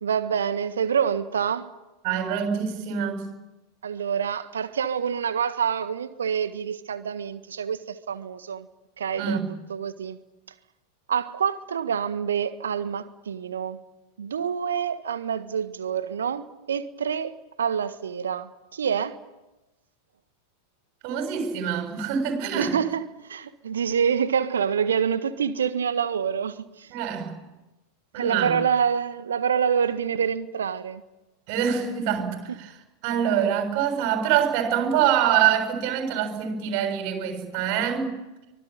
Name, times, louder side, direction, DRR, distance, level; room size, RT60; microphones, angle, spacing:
voice 1, 0.0-1.7 3.8-8.7 9.0-9.4 9.7-10.2 11.1-13.8 14.2-19.2 22.5-26.9 28.1-31.0, right 7 dB, 65° right, 1.5 m, -27 dB
voice 2, 2.0-3.3 9.2-9.5 21.0-22.8 26.9-27.3 28.1-28.5 31.5-32.8 33.0-38.2, right 9 dB, 45° right, 7.1 m, -25 dB
25.0 x 20.5 x 9.0 m
figure-of-eight pair, 90°, 0 cm